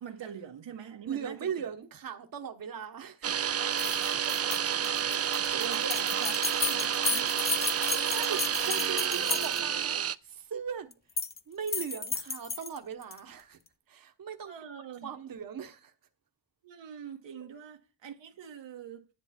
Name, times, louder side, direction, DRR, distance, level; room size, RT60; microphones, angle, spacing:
voice 1, 0.0-1.7 5.5-7.3 7.5-8.3 9.1-9.4 14.4-15.1 16.6-19.1, right 8 dB, 85° right, 1.5 m, -44 dB
voice 2, 1.1-3.4 5.3-6.3 7.7-10.9 11.5-13.6 13.9-14.5 15.0-15.9, right 7 dB, 50° right, 1.2 m, -39 dB
sound 1, 3.2-10.1, right 8 dB, 35° right, 0.5 m, -30 dB
sound 2, 3.7-9.8 10.9-11.4 11.7-13.2, left 4 dB, 25° left, 0.7 m, -34 dB
10.5 x 8.9 x 4.3 m
cardioid pair, 75°, 43 cm